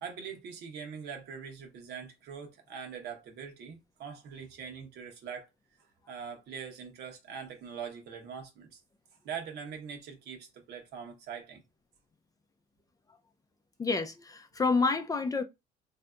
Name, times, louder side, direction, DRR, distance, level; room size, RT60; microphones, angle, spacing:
voice 1, 0.0-5.5 6.1-8.8 9.2-11.6, right 7 dB, 75° right, 1.0 m, -42 dB
voice 2, 13.8-15.4, left 4 dB, 20° left, 0.4 m, -28 dB
3.3 x 2.7 x 2.4 m
cardioid pair, 110°, 17 cm